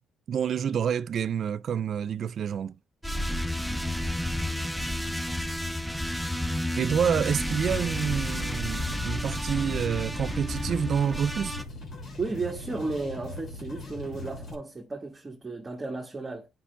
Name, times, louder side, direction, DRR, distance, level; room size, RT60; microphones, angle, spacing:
voice 1, 0.3-2.7 6.8-11.6, right 8 dB, 60° right, 0.4 m, -28 dB
sound 1, 3.0-11.7, left 1 dB, ahead, 0.7 m, -31 dB
sound 2, 7.5-14.5, left 2 dB, 55° left, 2.5 m, -41 dB
voice 2, 12.2-16.5, right 3 dB, 25° right, 1.4 m, -34 dB
10.0 x 5.5 x 2.3 m
cardioid pair, 90°, 0 cm